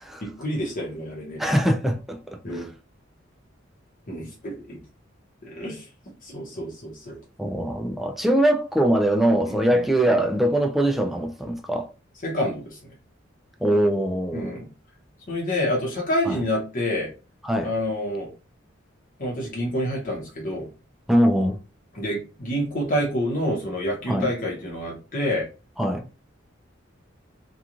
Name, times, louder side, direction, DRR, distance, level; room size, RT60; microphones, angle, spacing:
voice 1, 0.2-1.4 2.4-2.7 4.1-4.8 5.4-5.8 6.2-7.2 9.5-9.8 10.1-10.3 12.2-12.8 14.3-14.7 15.3-17.1 17.6-18.3 19.2-20.7 21.9-25.5, equal, 45° left, 0.8 m, -28 dB
voice 2, 1.4-2.7 7.4-11.9 13.6-14.6 16.3-16.4 17.4-17.7 21.1-21.6 24.1-24.3 25.8-26.1, right 1 dB, ahead, 0.3 m, -22 dB
2.9 x 2.3 x 2.4 m
head